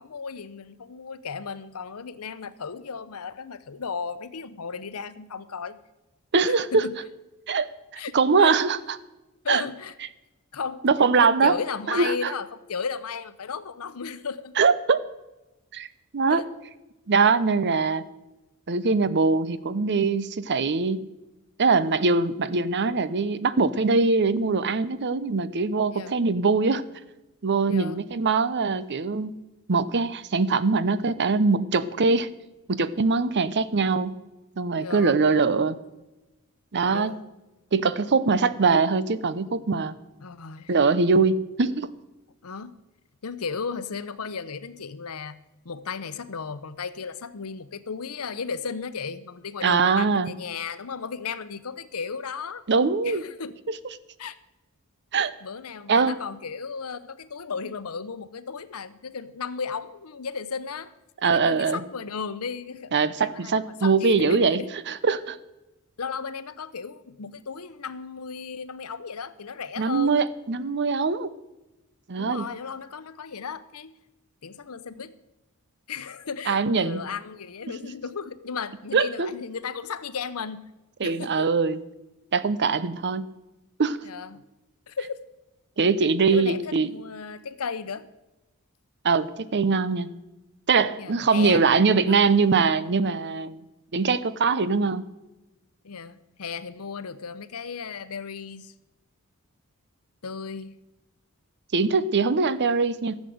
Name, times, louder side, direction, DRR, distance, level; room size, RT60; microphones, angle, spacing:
voice 1, 0.0-5.8 6.7-7.0 8.0-8.1 8.4-8.5 9.4-9.9 10.5-10.8 11.2-14.5 16.3-16.4 21.8-22.0 25.9-26.2 27.7-28.0 34.8-35.2 36.9-37.2 40.2-40.7 42.4-42.7 43.2-45.4 45.6-52.6 53.0-53.6 54.2-54.4 55.4-60.9 61.2-64.7 66.0-70.2 72.2-73.9 74.4-75.2 75.9-80.7 81.0-81.5 84.0-84.4 84.9-85.2 86.3-88.1 91.0-91.7 92.1-92.2 95.8-98.7 100.2-100.8, left 5 dB, 85° left, 14 dB, 0.8 m, -35 dB
voice 2, 6.3-6.8 7.5-7.7 8.1-9.0 9.5-9.6 10.8-11.5 11.9-12.3 14.6-15.0 15.7-15.9 16.1-16.4 17.1-18.0 18.7-21.0 21.6-26.8 27.4-29.3 29.7-32.3 32.7-34.1 34.6-35.8 36.7-37.1 37.7-39.9 40.7-41.9 49.6-50.3 52.7-53.2 53.7-53.8 55.1-55.3 55.9-56.2 61.2-61.8 62.9-65.4 69.8-71.3 72.1-72.5 76.5-77.0 78.9-79.3 81.0-81.8 82.3-83.3 83.8-84.0 85.8-86.9 89.0-90.1 90.7-93.6 93.9-95.0 101.7-103.2, right 4 dB, 55° right, 16 dB, 0.7 m, -22 dB
15.0 x 7.4 x 7.9 m, 1.0 s
head